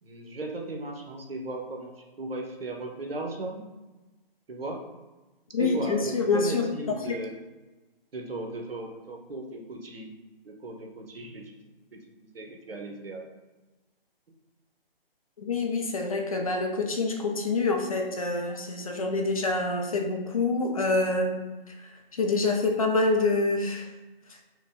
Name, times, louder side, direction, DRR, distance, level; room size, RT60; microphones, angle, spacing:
voice 1, 0.0-3.7 4.5-4.8 5.6-7.4 8.1-10.1 10.4-13.2 18.5-18.6, right 2 dB, 70° right, 2 dB, 0.9 m, -37 dB
voice 2, 5.5-7.2 15.4-23.9, left 3 dB, 35° left, 2 dB, 0.5 m, -27 dB
4.8 x 2.2 x 3.5 m, 1.1 s
figure-of-eight pair, 150°, 30 cm